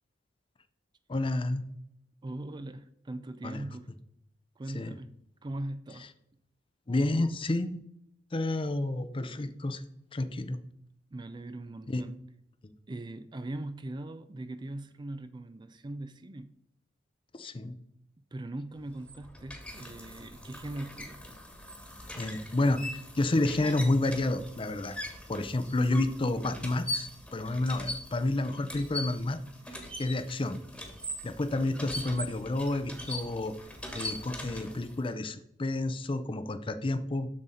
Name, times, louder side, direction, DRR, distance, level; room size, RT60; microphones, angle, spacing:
voice 1, 1.1-1.6 3.4-3.6 4.7-4.9 6.9-7.8 8.3-9.8 10.1-10.6 11.9-12.0 17.3-17.8 22.2-25.0 25.3-29.4 29.7-30.6 31.2-33.6 33.9-37.3, left 2 dB, 30° left, 11 dB, 0.5 m, -30 dB
voice 2, 2.2-3.9 4.6-5.2 5.4-6.1 11.1-12.1 12.9-16.6 18.3-21.2, right 1 dB, 25° right, 12 dB, 0.4 m, -40 dB
sound 1, 18.8-35.1, left 1 dB, 5° left, 1.4 m, -41 dB
7.3 x 6.6 x 4.2 m, 0.77 s
head